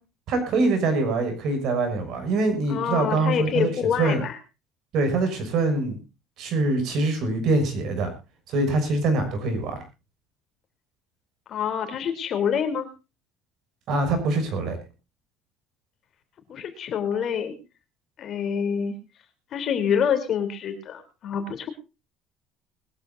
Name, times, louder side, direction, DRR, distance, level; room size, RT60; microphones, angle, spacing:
voice 1, 0.3-3.7 4.0-4.2 4.9-6.0 6.4-8.1 8.5-9.8 13.9-14.8, right 3 dB, 50° right, 8 dB, 6.6 m, -24 dB
voice 2, 2.7-4.4 11.5-12.9 16.5-17.6 18.2-18.9 19.5-21.7, left 7 dB, 35° left, 7 dB, 3.3 m, -26 dB
21.5 x 15.0 x 2.6 m, 0.30 s
cardioid pair, 175°, 0 cm